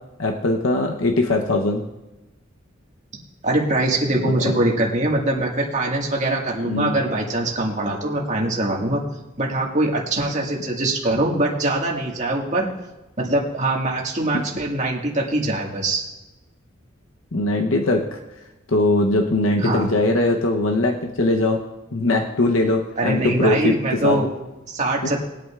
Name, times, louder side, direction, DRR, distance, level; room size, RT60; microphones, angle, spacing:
voice 1, 0.2-1.8 4.2-4.5 6.6-6.9 17.3-18.2 18.7-21.6 21.9-24.2, left 2 dB, 80° left, 2 dB, 0.9 m, -21 dB
voice 2, 3.4-9.0 9.4-12.7 13.2-16.0 19.6-19.9 23.0-24.3 24.7-25.2, right 2 dB, 35° right, -2 dB, 1.9 m, -22 dB
22.0 x 8.6 x 2.5 m, 1.0 s
head